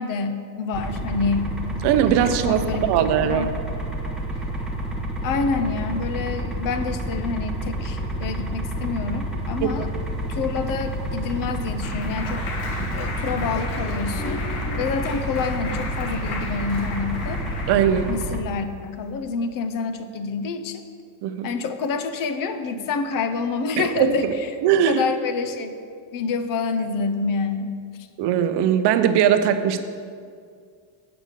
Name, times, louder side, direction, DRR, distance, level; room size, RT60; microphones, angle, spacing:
voice 1, 0.0-1.5 2.3-3.5 5.2-9.9 10.3-12.5 12.9-14.4 14.8-17.4 18.1-20.8 21.4-24.3 24.9-25.7 26.1-27.7, left 4 dB, 40° left, 9 dB, 0.7 m, -27 dB
sound 1, 0.7-18.4, right 1 dB, ahead, 0.8 m, -29 dB
voice 2, 1.8-3.5 9.6-9.7 12.8-12.9 17.7-18.1 21.2-21.5 23.8-24.1 24.6-25.0 28.2-29.8, right 9 dB, 55° right, 9 dB, 0.7 m, -20 dB
Clapping, 11.0-18.3, left 3 dB, 60° left, 1.6 m, -34 dB
7.9 x 5.0 x 6.5 m, 2.2 s
cardioid pair, 125°, 49 cm